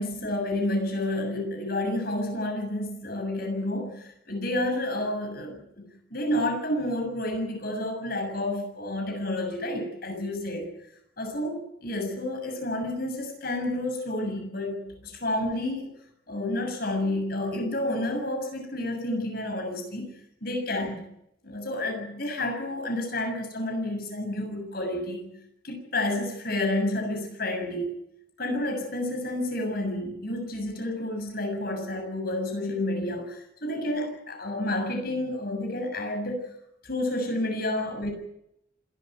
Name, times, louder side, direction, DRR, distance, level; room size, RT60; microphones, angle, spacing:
voice 1, 0.0-5.8 6.1-10.7 11.2-15.9 16.3-20.1 20.4-21.1 21.4-25.3 25.6-28.0 28.4-36.4 36.8-38.1, left 1 dB, 55° left, 5 dB, 7.0 m, -30 dB
26.5 x 12.5 x 9.4 m, 0.79 s
head